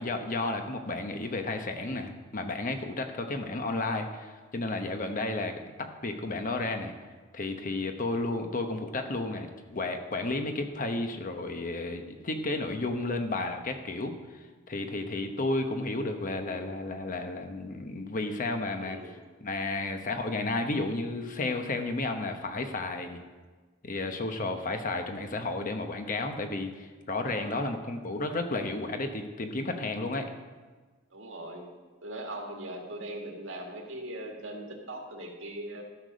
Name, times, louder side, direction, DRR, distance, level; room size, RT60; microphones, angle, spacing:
voice 1, 0.0-6.9 7.3-19.0 19.4-23.2 23.8-30.3, left 2 dB, 40° left, 6 dB, 0.9 m, -32 dB
voice 2, 18.8-19.1 27.2-27.6 31.1-31.7 32.0-35.8, right 1 dB, 70° right, 1 dB, 1.8 m, -40 dB
13.5 x 6.7 x 5.2 m, 1.3 s
head